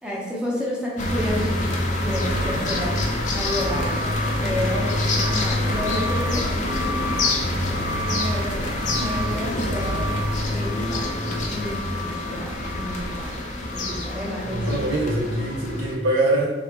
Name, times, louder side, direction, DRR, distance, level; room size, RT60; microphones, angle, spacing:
voice 1, 0.0-3.1 3.3-7.0 7.9-10.0 10.5-14.7, left 1 dB, 5° right, -5 dB, 0.7 m, -31 dB
sound 1, 1.0-15.9, left 1 dB, 40° left, 0.4 m, -25 dB
voice 2, 14.4-16.5, right 1 dB, 85° right, -3 dB, 0.6 m, -23 dB
3.3 x 2.3 x 2.9 m, 1.1 s
head